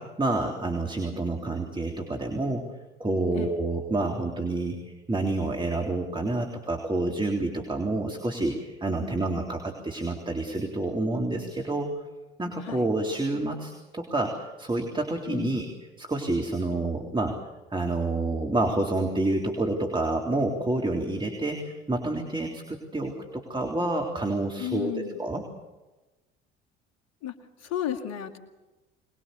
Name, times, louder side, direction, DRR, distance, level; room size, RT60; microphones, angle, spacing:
voice 1, 0.0-2.6 3.0-11.9 12.4-15.7 16.0-17.3 17.7-25.4, right 2 dB, 15° right, 2 dB, 3.6 m, -28 dB
voice 2, 15.3-15.7 24.6-25.2 27.2-27.3 27.6-28.4, left 11 dB, 60° left, 6 dB, 2.4 m, -34 dB
25.0 x 21.0 x 7.0 m, 1.1 s
hypercardioid pair, 60°, 30 cm